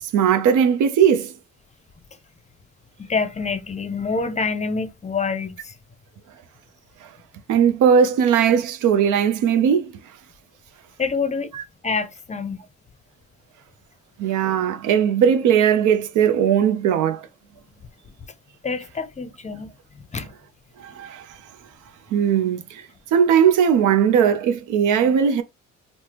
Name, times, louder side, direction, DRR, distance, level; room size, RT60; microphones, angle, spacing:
voice 1, 0.0-1.3 7.5-10.0 11.5-11.6 14.2-17.3 20.8-21.3 22.1-22.9 23.1-25.4, right 8 dB, 80° right, 0.6 m, -18 dB
voice 2, 3.0-5.8 11.0-11.5 11.8-12.6 18.6-20.3, left 4 dB, 25° left, 0.5 m, -27 dB
3.2 x 2.1 x 2.8 m
cardioid pair, 90°, 30 cm